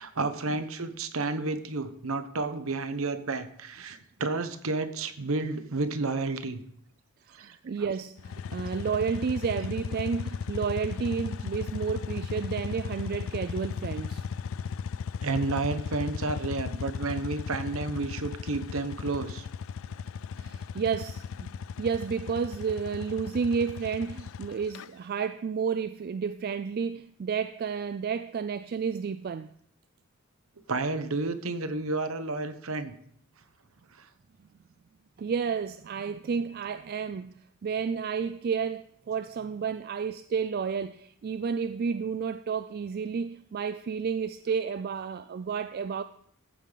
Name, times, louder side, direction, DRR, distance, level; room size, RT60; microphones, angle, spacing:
voice 1, 0.0-6.6 7.3-7.9 15.2-19.5 30.7-32.9 33.9-34.1, right 3 dB, 65° right, 1.0 m, -31 dB
voice 2, 7.3-14.3 20.4-21.5 21.8-29.5 35.2-37.3 37.6-46.0, right 6 dB, 45° right, 0.3 m, -31 dB
sound 1, 8.2-24.9, left 6 dB, 60° left, 0.3 m, -36 dB
14.5 x 8.3 x 3.9 m
head